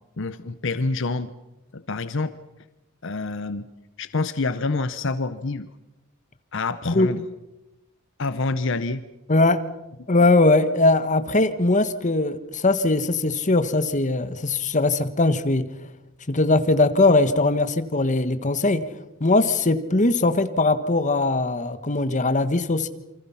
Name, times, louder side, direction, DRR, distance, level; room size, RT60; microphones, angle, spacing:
voice 1, 0.2-1.3 1.7-2.3 3.0-3.7 4.0-5.7 6.5-7.2 8.2-9.0, left 3 dB, 65° left, 13 dB, 0.9 m, -27 dB
voice 2, 9.3-9.6 10.1-15.6 16.3-18.8 19.2-22.9, left 2 dB, 40° left, 11 dB, 1.4 m, -20 dB
27.5 x 25.0 x 5.8 m, 0.98 s
head